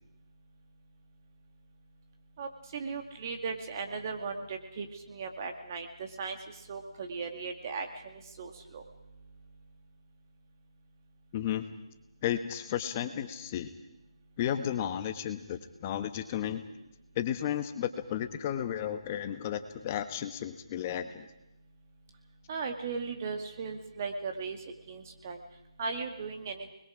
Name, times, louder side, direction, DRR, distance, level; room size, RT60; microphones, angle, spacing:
voice 1, 2.4-6.4 6.7-8.8 22.5-24.6 24.9-25.4 25.8-26.7, right 4 dB, 30° right, 5 dB, 2.1 m, -37 dB
voice 2, 11.3-11.6 12.2-13.7 14.4-16.6 17.1-21.3, left 10 dB, 20° left, 10 dB, 1.2 m, -33 dB
29.0 x 21.0 x 5.0 m, 0.91 s
figure-of-eight pair, 165°, 3 cm